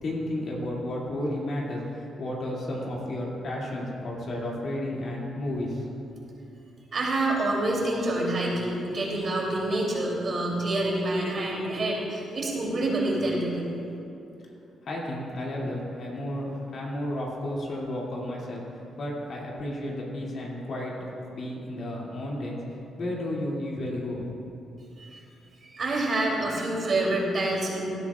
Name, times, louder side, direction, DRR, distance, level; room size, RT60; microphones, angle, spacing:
voice 1, 0.0-6.1 14.8-18.6 19.0-20.9 21.3-24.2, left 1 dB, 55° left, -3 dB, 2.4 m, -32 dB
voice 2, 6.9-13.6 25.0-25.2 25.6-27.9, right 2 dB, 45° right, -3 dB, 2.9 m, -27 dB
17.0 x 12.0 x 2.4 m, 2.7 s
cardioid pair, 115°, 0 cm